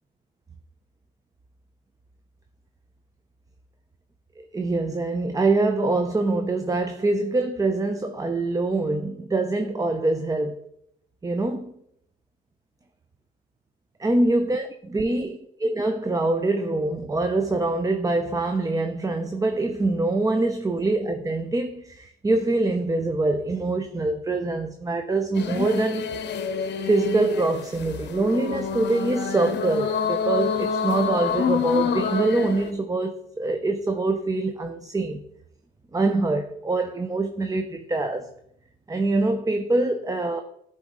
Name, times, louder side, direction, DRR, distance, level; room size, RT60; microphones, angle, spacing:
voice 1, 4.4-10.6 11.2-11.7 14.0-14.7 14.9-15.3 15.6-26.2 26.8-35.2 35.9-38.3 38.9-40.4, right 2 dB, 15° right, 0.5 m, -24 dB
sound 1, 25.3-32.7, left 7 dB, 60° left, 0.7 m, -27 dB
10.0 x 4.0 x 3.6 m
cardioid pair, 90°, 20 cm